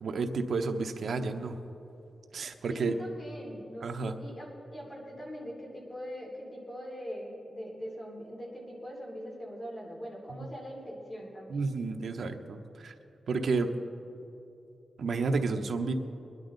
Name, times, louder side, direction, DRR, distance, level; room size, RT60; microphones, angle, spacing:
voice 1, 0.0-1.6 2.3-3.0 3.8-4.2 11.5-12.9 13.3-13.7 15.0-15.9, right 4 dB, 70° right, 5 dB, 0.9 m, -31 dB
voice 2, 2.7-11.6, equal, 35° left, -3 dB, 3.2 m, -42 dB
23.5 x 11.0 x 4.0 m, 2.8 s
wide cardioid pair, 140°, 0 cm